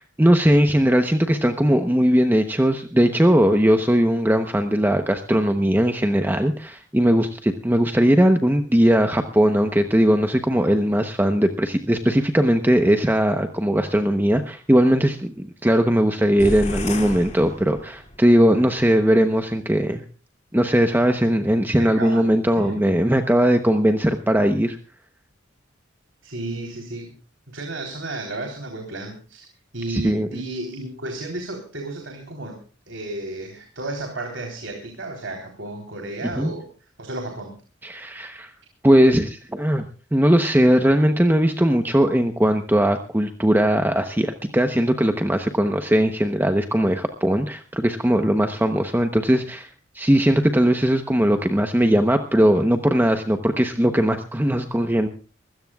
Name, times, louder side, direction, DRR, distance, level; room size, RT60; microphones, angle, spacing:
voice 1, 0.0-20.0 20.5-24.8 29.9-30.4 36.3-36.5 37.8-38.5 38.8-39.8 40.1-49.7 49.9-55.1, equal, 10° right, 6 dB, 0.9 m, -19 dB
sound 1, 16.4-18.2, left 2 dB, 35° left, 2.5 m, -31 dB
voice 2, 21.8-22.3 22.6-22.9 26.2-27.1 27.5-29.5 29.7-32.6 32.9-36.7 37.0-37.5, right 2 dB, 70° right, 2 dB, 3.7 m, -33 dB
23.5 x 16.5 x 2.4 m, 0.36 s
head